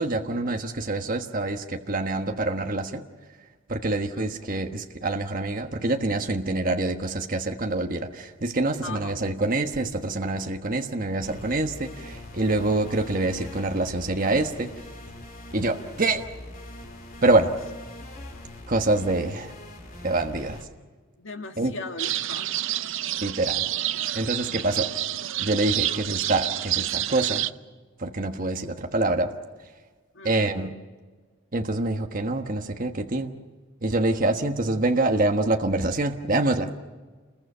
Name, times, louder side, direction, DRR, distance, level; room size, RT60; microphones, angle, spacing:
voice 1, 0.0-3.0 3.7-14.7 15.5-16.2 17.2-17.5 18.7-19.5 20.0-20.6 21.6-21.7 23.2-23.7 24.1-24.9 25.4-27.5 28.0-29.3 30.2-30.7 31.5-33.3 33.8-36.7, right 2 dB, 40° right, 4 dB, 1.3 m, -26 dB
voice 2, 8.8-9.2 21.2-22.6 24.6-24.7 25.8-26.1 30.1-30.7, left 3 dB, 65° left, 5 dB, 1.9 m, -39 dB
sound 1, 11.2-20.6, left 1 dB, 40° left, 3.3 m, -42 dB
sound 2, 22.0-27.5, right 13 dB, 60° right, 0.6 m, -28 dB
28.5 x 22.0 x 5.7 m, 1.4 s
head